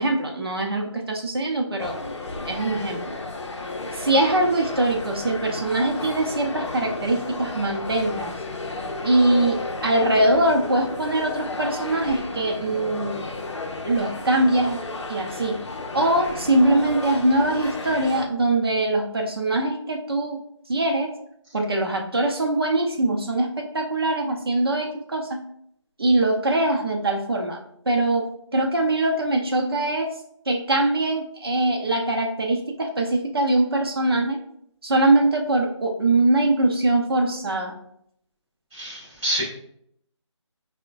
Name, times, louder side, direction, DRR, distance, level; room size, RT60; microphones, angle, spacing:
voice 1, 0.0-2.0 2.5-3.1 3.9-8.3 9.0-13.2 13.8-14.8 15.1-15.6 15.9-20.4 20.7-21.1 21.5-25.4 26.0-27.6 27.9-30.1 30.5-34.4 34.8-37.7, right 2 dB, 50° right, 2 dB, 0.6 m, -22 dB
sound 1, 1.8-18.3, left 2 dB, 65° left, 0.5 m, -33 dB
voice 2, 38.7-39.4, equal, ahead, -25 dB, 0.5 m, -27 dB
4.5 x 2.1 x 2.5 m, 0.70 s
figure-of-eight pair, 170°, 16 cm